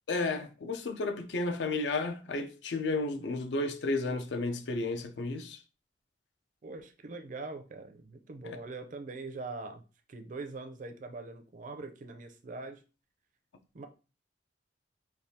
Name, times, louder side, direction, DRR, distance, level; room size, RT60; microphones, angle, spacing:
voice 1, 0.1-5.6 8.4-8.6, left 3 dB, 75° left, 0.5 m, -32 dB
voice 2, 6.6-9.8 10.1-12.8 13.7-13.9, right 3 dB, 45° right, 0.5 m, -42 dB
3.4 x 2.3 x 2.7 m
head